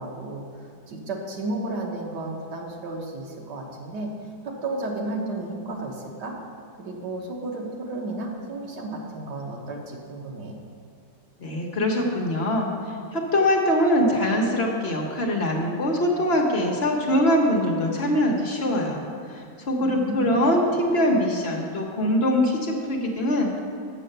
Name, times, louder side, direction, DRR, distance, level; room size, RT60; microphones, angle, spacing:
voice 1, 0.0-4.1 4.4-6.4 6.8-10.6 19.8-20.4, right 2 dB, 85° right, -1 dB, 1.8 m, -33 dB
voice 2, 11.4-19.0 19.3-23.6, left 1 dB, 45° left, -1 dB, 1.0 m, -23 dB
7.3 x 6.8 x 6.6 m, 2.2 s
omnidirectional pair, 1.8 m